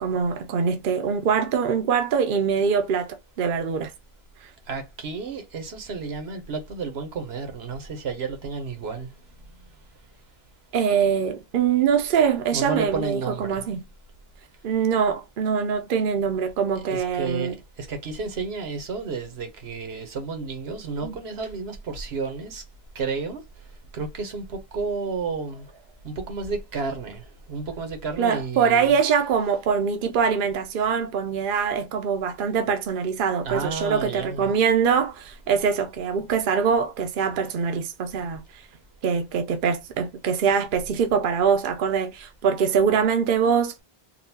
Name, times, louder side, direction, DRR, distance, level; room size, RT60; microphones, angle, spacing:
voice 1, 0.0-3.9 4.4-4.5 10.7-13.8 14.6-17.6 21.0-21.2 28.2-38.6 39.0-43.8, right 6 dB, 60° right, 0.7 m, -23 dB
voice 2, 4.7-9.1 12.5-13.6 16.7-22.6 22.9-23.4 23.9-28.9 33.4-34.5, right 4 dB, 80° right, 1.2 m, -32 dB
3.9 x 2.3 x 2.6 m
omnidirectional pair, 1.0 m